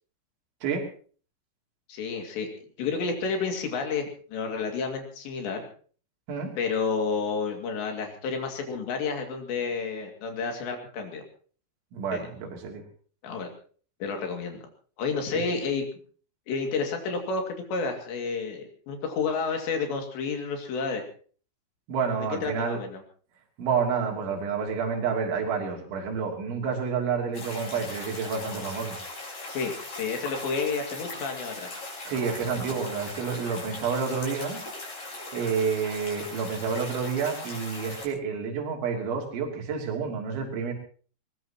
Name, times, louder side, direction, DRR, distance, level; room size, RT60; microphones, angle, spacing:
voice 1, 1.9-2.5 2.8-4.1 4.3-5.6 6.6-11.2 12.1-12.3 13.2-13.5 14.0-14.6 15.0-15.9 16.5-21.0 22.4-23.0 29.5-31.7, left 4 dB, 70° left, 3 dB, 4.5 m, -30 dB
voice 2, 11.9-12.8 15.3-15.4 21.9-22.8 23.6-29.0 32.1-34.6 35.3-40.7, right 6 dB, 75° right, 2 dB, 5.3 m, -29 dB
sound 1, 27.3-38.1, left 2 dB, 40° left, 6.6 m, -39 dB
22.5 x 20.0 x 3.0 m, 0.43 s
omnidirectional pair, 5.4 m